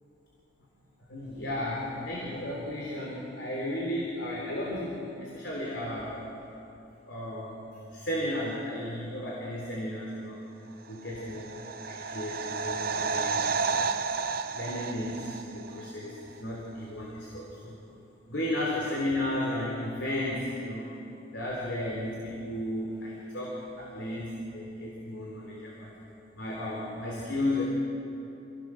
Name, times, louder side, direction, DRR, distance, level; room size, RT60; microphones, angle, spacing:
voice 1, 1.1-6.2 7.1-10.4 10.9-13.9 14.5-17.8 18.3-20.9 21.3-25.9 26.3-27.6, left 1 dB, 75° left, -3 dB, 3.5 m, -34 dB
sound 1, 11.0-15.9 16.2-16.3, right 5 dB, 55° right, 0.8 m, -32 dB
26.5 x 17.0 x 6.3 m, 2.9 s
head